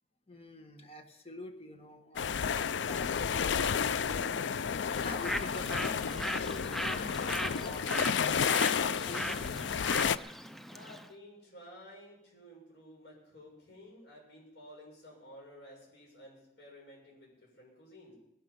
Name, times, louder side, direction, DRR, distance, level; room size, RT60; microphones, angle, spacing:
voice 1, 0.3-9.6, left 2 dB, 35° left, 6 dB, 1.5 m, -47 dB
sound 1, 2.2-10.2, left 7 dB, 90° left, 0.4 m, -31 dB
Bird, 4.9-11.1, equal, ahead, 0.5 m, -38 dB
voice 2, 10.7-18.1, equal, 75° left, -2 dB, 7.1 m, -53 dB
19.0 x 11.5 x 5.5 m, 0.83 s
head